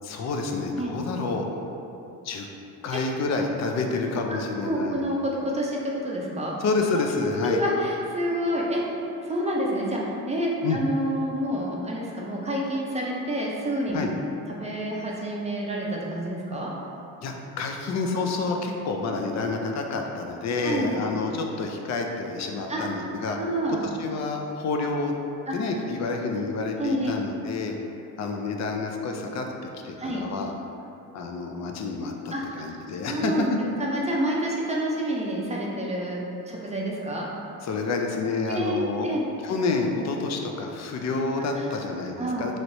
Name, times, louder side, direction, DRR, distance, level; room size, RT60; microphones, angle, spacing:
voice 1, 0.0-1.4 2.2-2.5 2.8-5.0 6.6-7.6 10.6-10.8 13.9-14.1 17.2-23.4 24.0-25.1 25.5-27.7 28.2-29.5 29.8-30.5 31.1-33.6 37.6-39.1 39.4-42.6, left 3 dB, 50° left, 2 dB, 0.4 m, -28 dB
voice 2, 4.3-6.6 7.3-8.8 9.2-14.0 14.5-16.7 20.6-21.0 22.7-23.1 23.4-23.9 25.5-25.6 26.8-27.1 30.0-30.2 32.3-32.8 33.1-33.5 33.8-37.3 38.5-39.2 41.5-41.7 42.2-42.5, right 1 dB, 20° right, -3 dB, 0.5 m, -28 dB
3.0 x 3.0 x 2.6 m, 2.8 s
cardioid pair, 95°, 34 cm